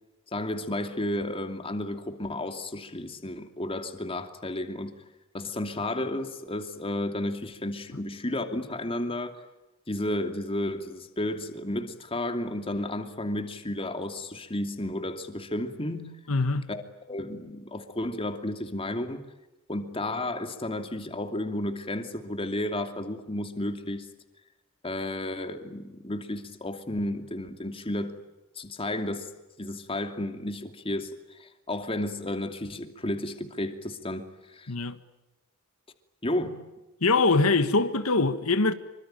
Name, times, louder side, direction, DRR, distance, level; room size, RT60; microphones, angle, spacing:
voice 1, 0.3-4.9 5.3-9.4 9.9-16.2 16.7-16.8 17.1-19.2 19.7-24.1 24.8-28.1 28.5-29.3 29.6-34.7 36.2-36.6, left 1 dB, 25° left, 2.7 m, -32 dB
voice 2, 16.3-16.7 34.7-35.0 37.0-38.7, left 3 dB, 85° left, 1.5 m, -23 dB
26.5 x 25.0 x 9.1 m
head